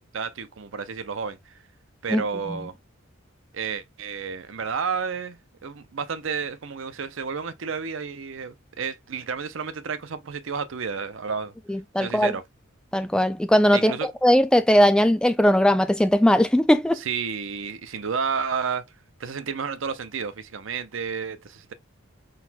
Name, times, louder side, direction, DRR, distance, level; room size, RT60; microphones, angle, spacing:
voice 1, 0.0-1.6 2.0-2.8 3.5-11.5 12.0-12.4 13.7-14.1 16.9-18.8 19.2-21.7, right 6 dB, 70° right, 0.6 m, -31 dB
voice 2, 11.7-12.3 12.9-13.9 14.2-17.0, equal, 5° left, 0.3 m, -19 dB
4.3 x 4.0 x 2.2 m
head